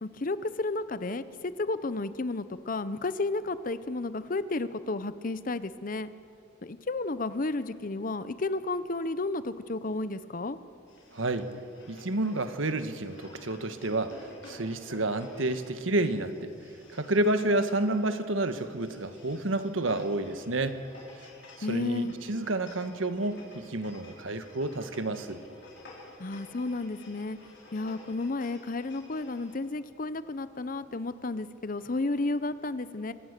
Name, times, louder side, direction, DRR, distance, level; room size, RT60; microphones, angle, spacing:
voice 1, 0.0-6.1 6.6-10.6 21.6-22.1 26.2-27.4 27.7-33.1, left 2 dB, 45° left, 14 dB, 0.7 m, -32 dB
sound 1, 10.9-29.5, left 2 dB, 65° left, 5.3 m, -53 dB
voice 2, 11.1-11.5 11.9-16.5 16.9-20.8 21.6-25.4, right 2 dB, 85° right, 10 dB, 1.4 m, -30 dB
25.5 x 17.5 x 6.7 m, 2.5 s
head